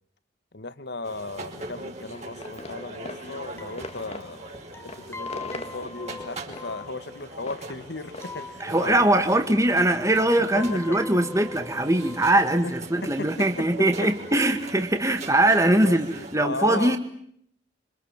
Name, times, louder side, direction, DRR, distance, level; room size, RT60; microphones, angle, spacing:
voice 1, 0.5-9.4 10.5-11.0 12.6-12.7 13.0-14.1 15.0-15.2 15.7-17.0, left 3 dB, 55° left, 13 dB, 1.7 m, -36 dB
sound 1, 1.0-16.4, right 2 dB, 35° right, 5.0 m, -42 dB
sound 2, 2.1-9.3, left 2 dB, 35° left, 2.1 m, -43 dB
sound 3, 2.6-2.7 2.9-3.0 3.3-3.4 3.6-12.7, left 4 dB, 10° left, 2.0 m, -42 dB
voice 2, 8.6-16.1 16.3-17.0, right 1 dB, 15° right, 7 dB, 1.9 m, -21 dB
27.0 x 26.0 x 7.3 m, 0.68 s
head